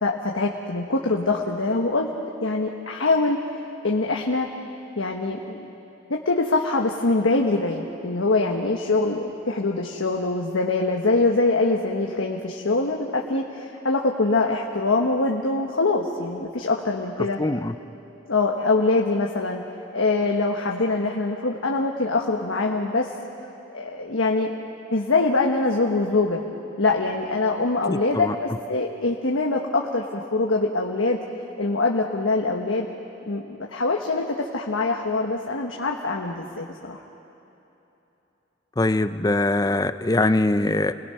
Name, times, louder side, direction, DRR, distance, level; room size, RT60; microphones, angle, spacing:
voice 1, 0.0-2.1 2.4-3.4 3.8-4.5 5.0-5.7 6.1-17.4 18.3-19.6 19.9-23.1 23.7-26.4 26.8-31.2 31.6-32.9 33.3-37.0, left 3 dB, 90° left, 0 dB, 1.3 m, -24 dB
voice 2, 17.4-17.7 27.9-28.3 38.8-40.9, left 2 dB, 20° left, 11 dB, 0.5 m, -22 dB
29.5 x 20.5 x 5.8 m, 3.0 s
head